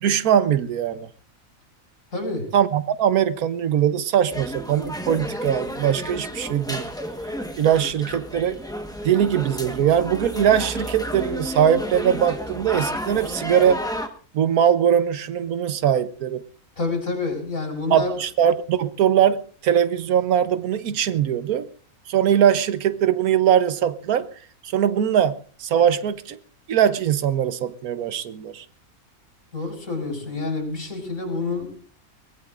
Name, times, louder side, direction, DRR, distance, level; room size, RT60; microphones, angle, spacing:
voice 1, 0.0-1.1 2.5-6.9 7.6-8.6 9.0-13.8 14.3-16.4 17.9-21.7 22.1-24.3 24.6-25.3 25.6-26.4 26.7-28.6, right 9 dB, 85° right, 1.3 m, -21 dB
voice 2, 2.1-2.5 9.0-9.1 16.8-18.2 29.5-31.7, left 3 dB, 65° left, 5.4 m, -28 dB
sound 1, 4.3-14.1, equal, 5° left, 1.0 m, -31 dB
23.0 x 18.0 x 2.5 m
omnidirectional pair, 1.5 m